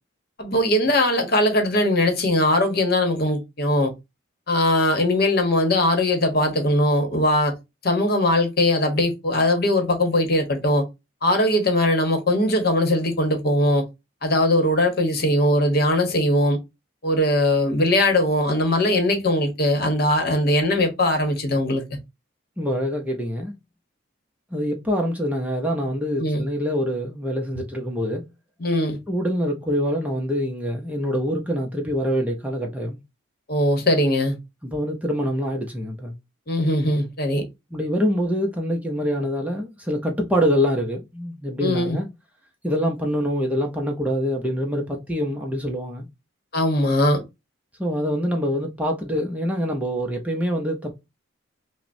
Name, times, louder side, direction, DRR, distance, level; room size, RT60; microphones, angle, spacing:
voice 1, 0.4-3.9 4.5-7.5 7.8-10.8 11.2-13.8 14.2-16.6 17.0-21.8 26.2-26.4 28.6-29.0 33.5-34.4 36.5-37.4 41.6-42.0 46.5-47.2, left 1 dB, 50° left, 1.0 m, -20 dB
voice 2, 22.6-23.5 24.5-28.2 29.1-33.0 34.6-36.1 37.7-42.1 42.6-46.1 47.8-50.9, equal, 5° right, 0.5 m, -25 dB
5.7 x 2.1 x 2.6 m
head